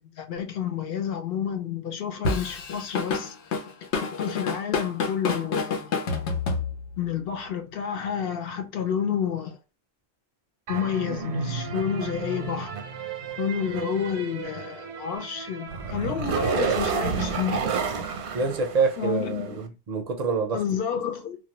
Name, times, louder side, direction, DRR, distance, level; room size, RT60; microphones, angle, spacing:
voice 1, 0.2-3.3 4.2-5.9 7.0-9.6 10.7-12.7 13.4-17.9 19.0-19.6 20.5-21.4, left 8 dB, 65° left, 0.8 m, -30 dB
Drum kit / Drum, 2.2-7.1, left 4 dB, 90° left, 0.9 m, -28 dB
sound 1, 10.7-19.4, right 6 dB, 80° right, 0.9 m, -31 dB
voice 2, 16.4-16.8 17.6-17.8 18.3-20.6, right 4 dB, 50° right, 0.5 m, -27 dB
2.3 x 2.2 x 2.9 m
omnidirectional pair, 1.1 m